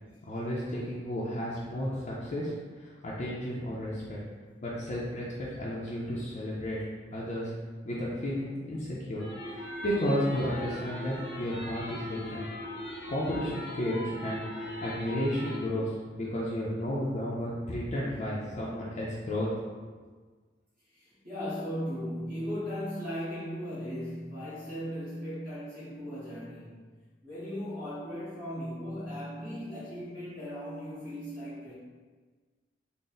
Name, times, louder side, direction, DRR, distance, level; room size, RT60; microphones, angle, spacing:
voice 1, 0.2-4.2 4.6-6.8 7.1-7.5 7.8-9.3 9.6-12.4 13.1-19.7, equal, 40° left, -7 dB, 0.5 m, -33 dB
sound 1, 9.2-15.6, left 1 dB, 75° left, 0.7 m, -39 dB
voice 2, 20.9-26.8 27.2-31.7, equal, 55° right, -12 dB, 1.4 m, -37 dB
3.7 x 2.0 x 3.9 m, 1.5 s
head